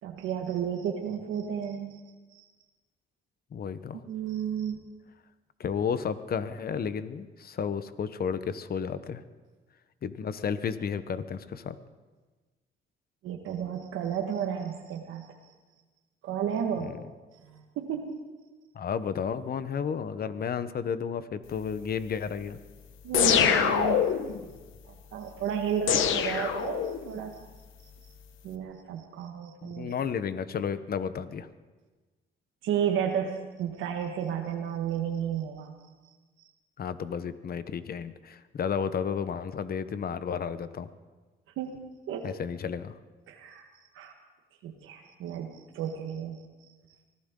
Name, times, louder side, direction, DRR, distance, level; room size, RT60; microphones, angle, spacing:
voice 1, 0.0-2.0 2.3-2.4 4.0-4.8 13.2-15.3 16.2-16.9 17.4-18.2 23.0-24.1 24.8-27.3 28.4-29.9 32.6-35.7 36.4-36.5 41.6-42.3 43.3-43.7 43.9-44.2 44.6-46.4, right 8 dB, 90° right, 3 dB, 1.6 m, -32 dB
voice 2, 3.5-4.0 5.6-9.2 10.0-11.8 16.8-17.0 18.7-22.6 29.6-31.5 36.8-40.9 42.2-42.9, left 7 dB, 50° left, 13 dB, 1.0 m, -32 dB
sound 1, 23.1-24.4 25.9-27.2, left 9 dB, 80° left, 1.1 m, -24 dB
24.0 x 15.5 x 3.8 m, 1.3 s
cardioid pair, 90°, 20 cm